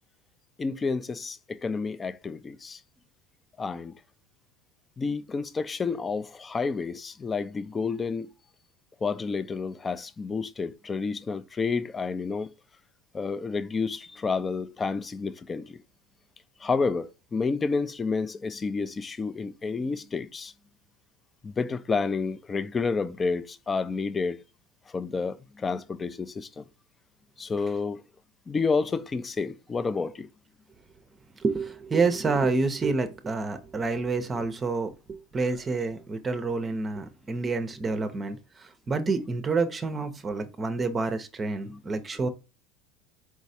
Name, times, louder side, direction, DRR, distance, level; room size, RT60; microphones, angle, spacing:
voice 1, 0.6-2.8 3.6-4.0 5.0-8.3 9.0-12.5 13.1-15.8 16.6-20.5 21.4-24.4 24.9-26.6 27.4-28.0 28.5-30.3 41.6-41.8, left 4 dB, 25° left, 0.4 m, -30 dB
voice 2, 31.4-42.3, right 3 dB, 25° right, 0.6 m, -28 dB
4.7 x 3.1 x 2.7 m
hypercardioid pair, 80°, 0 cm